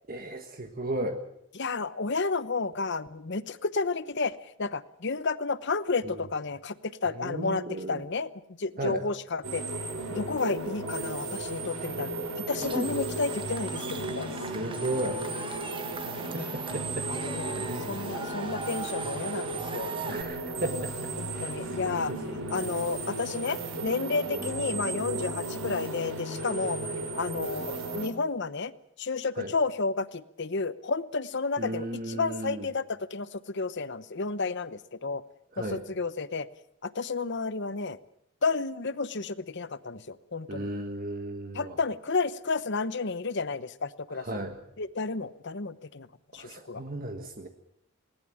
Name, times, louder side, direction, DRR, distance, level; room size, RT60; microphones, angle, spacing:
voice 1, 0.1-1.2 6.0-6.2 7.1-8.0 8.8-9.0 14.5-15.7 16.3-17.1 17.6-17.9 20.1-21.5 21.8-22.4 24.4-24.5 29.4-29.5 31.6-32.7 35.5-35.8 40.5-41.8 44.1-44.6 46.3-47.5, right 1 dB, 45° right, 5 dB, 1.6 m, -35 dB
voice 2, 1.6-6.7 7.0-7.6 7.9-8.3 8.6-9.6 10.1-12.1 12.5-14.5 16.4-16.5 17.1-19.9 21.2-22.1 22.5-26.8 27.2-28.7 29.0-35.2 35.6-36.5 36.8-38.0 38.4-40.7 41.5-44.3 44.8-46.1 46.3-46.8, left 4 dB, 55° left, 15 dB, 0.9 m, -31 dB
sound 1, 9.4-28.1, right 2 dB, 75° right, 4.8 m, -35 dB
Cheering / Crowd, 12.6-20.2, right 3 dB, 25° right, 1.7 m, -39 dB
20.0 x 18.5 x 8.7 m, 0.74 s
head